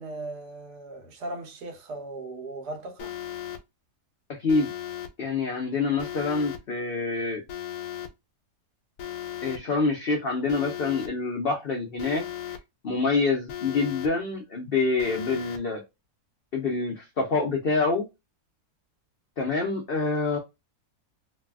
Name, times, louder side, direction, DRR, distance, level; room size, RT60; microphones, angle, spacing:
voice 1, 0.0-3.1, right 2 dB, 90° right, 1.4 m, -38 dB
Alarm, 3.0-3.6 4.5-5.1 6.0-6.6 7.5-8.1 9.0-9.6 10.5-11.1 12.0-12.6 13.5-14.1 15.0-15.6, left 11 dB, 80° left, 1.1 m, -36 dB
voice 2, 4.4-4.7 5.2-7.4 9.4-12.5 12.8-15.8 16.5-18.1 19.4-20.4, left 4 dB, 50° left, 0.7 m, -26 dB
3.2 x 2.2 x 2.2 m
omnidirectional pair, 1.7 m